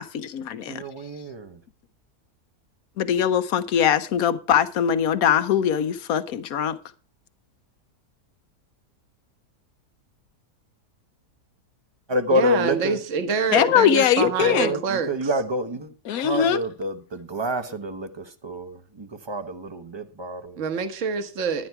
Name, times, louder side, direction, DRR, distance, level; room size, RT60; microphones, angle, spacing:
voice 1, 0.0-0.8 3.0-6.7 13.5-14.8 16.0-16.6, left 9 dB, 65° left, 1.2 m, -22 dB
voice 2, 0.7-1.6 12.1-13.0 14.2-15.9 16.2-20.6, equal, 25° right, 0.7 m, -28 dB
voice 3, 12.3-15.3 20.6-21.7, right 5 dB, 50° right, 1.4 m, -26 dB
11.0 x 9.9 x 4.6 m
omnidirectional pair, 1.7 m